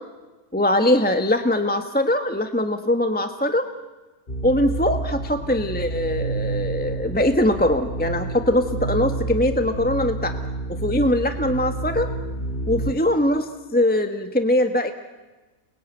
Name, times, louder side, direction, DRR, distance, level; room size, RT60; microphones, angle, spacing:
voice 1, 0.5-3.7 4.4-10.4 10.7-12.1 12.7-14.9, left 1 dB, 5° left, 7 dB, 1.3 m, -21 dB
sound 1, 4.3-12.9, right 3 dB, 40° left, 2.0 m, -29 dB
29.5 x 21.5 x 9.2 m, 1.2 s
omnidirectional pair, 1.5 m